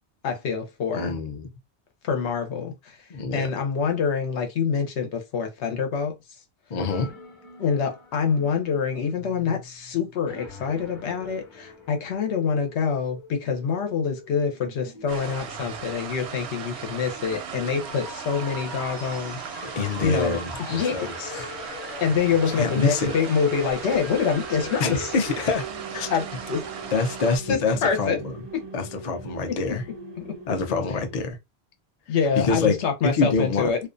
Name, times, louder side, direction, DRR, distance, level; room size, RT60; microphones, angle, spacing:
voice 1, 0.2-1.2 2.0-3.0 3.3-6.1 7.6-19.4 20.0-20.4 20.7-21.4 22.0-25.1 26.1-26.6 27.5-28.2 29.5-29.6 30.2-30.3 32.1-33.8, left 6 dB, 80° left, 1.0 m, -26 dB
voice 2, 0.9-1.5 3.1-3.5 6.7-7.1 19.6-21.5 22.5-23.2 24.8-25.7 25.9-26.1 26.9-28.3 28.7-29.8 30.5-31.4 32.4-32.8 33.0-33.7, left 4 dB, 50° left, 0.5 m, -26 dB
sound 1, 6.8-25.6, left 3 dB, 30° left, 0.8 m, -43 dB
sound 2, 15.1-27.4, right 7 dB, 80° right, 0.9 m, -37 dB
sound 3, 18.8-20.6 23.7-31.3, right 5 dB, 35° right, 0.4 m, -42 dB
2.5 x 2.2 x 2.4 m
omnidirectional pair, 1.1 m